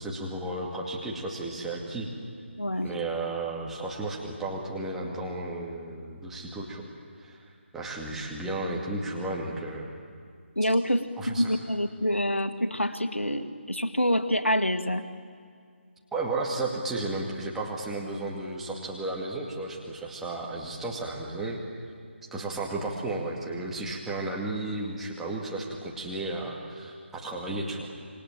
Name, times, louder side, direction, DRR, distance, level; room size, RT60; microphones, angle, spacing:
voice 1, 0.0-2.1 2.8-6.9 7.2-7.4 7.7-9.9 11.2-11.5 16.1-21.6 22.3-27.9, right 2 dB, 5° right, -3 dB, 2.4 m, -33 dB
voice 2, 2.6-2.9 10.6-15.0, equal, 85° left, 7 dB, 2.0 m, -26 dB
27.0 x 23.0 x 9.0 m, 2.1 s
figure-of-eight pair, 150°, 7 cm